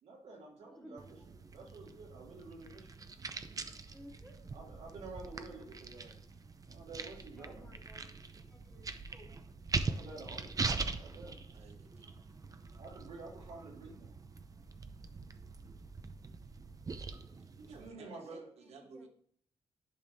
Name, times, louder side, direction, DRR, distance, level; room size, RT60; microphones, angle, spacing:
voice 1, 0.0-2.9 4.5-6.2 6.7-7.7 9.8-10.7 10.9-11.4 12.8-14.1 17.8-18.5, right 3 dB, 85° right, 2.9 m, -50 dB
voice 2, 0.6-1.2 3.9-4.4 7.4-8.1 8.5-9.4 18.6-19.1, equal, 5° left, 1.6 m, -56 dB
sound 1, 1.0-17.9, right 4 dB, 35° right, 0.6 m, -42 dB
voice 3, 11.4-12.4 17.4-19.1, right 4 dB, 70° right, 1.4 m, -56 dB
11.0 x 5.4 x 2.8 m
cardioid pair, 95°, 11 cm